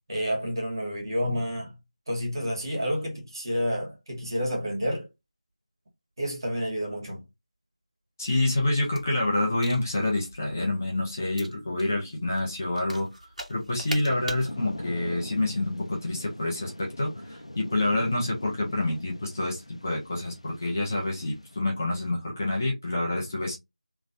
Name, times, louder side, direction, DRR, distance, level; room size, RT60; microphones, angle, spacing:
voice 1, 0.1-1.7 2.1-5.1 6.2-7.2, equal, 40° right, 2.1 m, -29 dB
voice 2, 8.2-13.1 13.5-23.6, left 2 dB, 25° left, 1.2 m, -27 dB
sound 1, 8.6-14.5, equal, 90° right, 1.6 m, -43 dB
Thunder / Rain, 14.0-21.6, left 1 dB, 65° left, 0.9 m, -42 dB
3.8 x 3.5 x 2.7 m
figure-of-eight pair, 170°, 4 cm